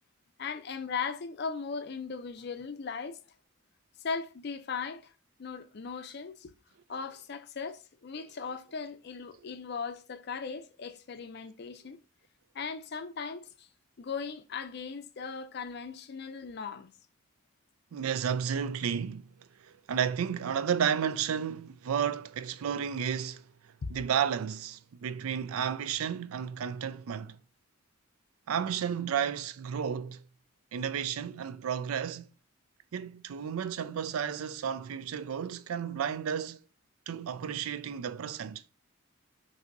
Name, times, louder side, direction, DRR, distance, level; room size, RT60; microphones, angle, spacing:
voice 1, 0.4-3.2 4.0-5.1 5.4-6.5 6.9-12.0 12.5-13.7 14.0-16.9, left 5 dB, 50° left, 0.4 m, -38 dB
voice 2, 17.9-19.3 19.6-23.4 23.9-27.4 28.5-30.2 30.7-32.3 32.9-36.6 37.1-38.6, right 8 dB, 85° right, 0.4 m, -32 dB
5.8 x 2.7 x 2.6 m
head